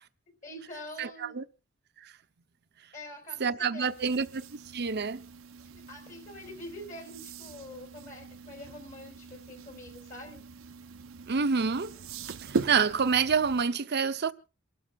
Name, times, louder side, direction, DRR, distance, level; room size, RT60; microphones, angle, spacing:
voice 1, 0.4-1.4 2.9-4.2 5.7-10.4, left 1 dB, 40° left, 4.2 m, -45 dB
voice 2, 1.0-1.4 2.0-2.1 3.4-4.4 4.7-5.2 11.3-11.9 12.4-14.3, right 5 dB, 55° right, 0.8 m, -27 dB
sound 1, 3.8-13.6, right 4 dB, 85° right, 0.8 m, -41 dB
28.0 x 12.5 x 2.4 m
head